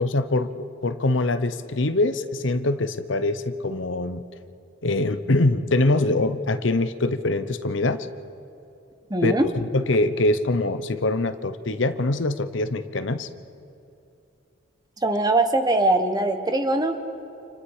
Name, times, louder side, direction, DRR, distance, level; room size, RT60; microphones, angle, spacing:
voice 1, 0.0-4.2 4.8-8.1 9.2-13.3, left 2 dB, 70° left, 11 dB, 0.9 m, -24 dB
voice 2, 9.1-9.5 15.0-17.0, right 2 dB, 20° right, 6 dB, 1.4 m, -21 dB
30.0 x 28.0 x 4.9 m, 2.7 s
head